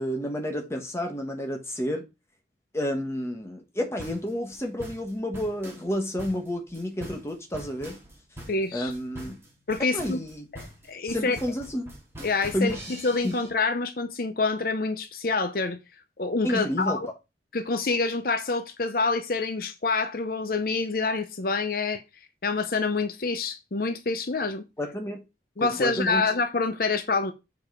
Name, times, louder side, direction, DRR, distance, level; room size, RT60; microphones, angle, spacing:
voice 1, 0.0-2.0 2.7-8.0 8.7-9.4 9.9-10.5 11.1-11.9 12.5-12.8 13.2-13.3 16.4-17.0 24.8-25.2 25.6-26.2, equal, 15° left, 1.4 m, -30 dB
sound 1, 4.0-13.5, equal, 15° right, 2.3 m, -43 dB
voice 2, 8.5-8.9 9.7-10.2 10.5-11.4 12.2-12.8 13.0-15.8 16.2-17.1 17.5-22.0 22.4-24.6 25.6-27.3, left 3 dB, 55° left, 0.7 m, -27 dB
6.9 x 4.8 x 4.8 m
head